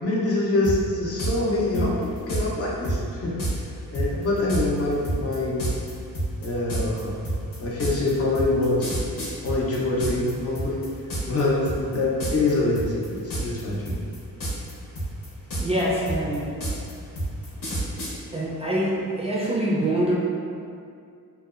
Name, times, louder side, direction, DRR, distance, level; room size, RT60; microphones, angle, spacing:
voice 1, 0.0-3.4 3.9-5.7 6.4-7.1 7.6-8.9 9.4-10.8 11.2-14.0, left 2 dB, 45° left, -5 dB, 0.5 m, -25 dB
sound 1, 0.6-0.8 1.2-1.3 1.7-2.4 2.8-3.0 3.4-3.5 3.9-10.3 10.6-11.4 11.7-12.0 12.2-12.5 12.8-13.6 13.9-14.7 15.0-18.1, right 1 dB, 70° left, 0.8 m, -28 dB
voice 2, 15.6-16.5 17.6-17.7 18.3-20.1, right 1 dB, 20° right, -7 dB, 0.3 m, -25 dB
2.6 x 2.0 x 2.3 m, 2.4 s
cardioid pair, 95°, 35 cm